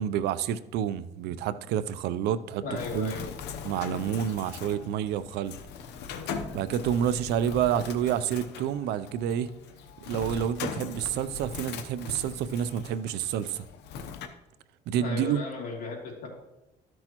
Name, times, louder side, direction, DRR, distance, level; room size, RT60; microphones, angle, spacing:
voice 1, 0.0-2.6 2.9-3.1 3.6-5.6 6.5-9.5 10.1-13.7 14.9-15.4, right 9 dB, 80° right, 0.5 m, -29 dB
voice 2, 2.6-3.3 15.0-16.3, left 3 dB, 60° left, 2.7 m, -35 dB
Bird, 2.8-14.3, left 6 dB, 80° left, 0.8 m, -40 dB
13.0 x 6.2 x 3.0 m
cardioid pair, 110°, 17 cm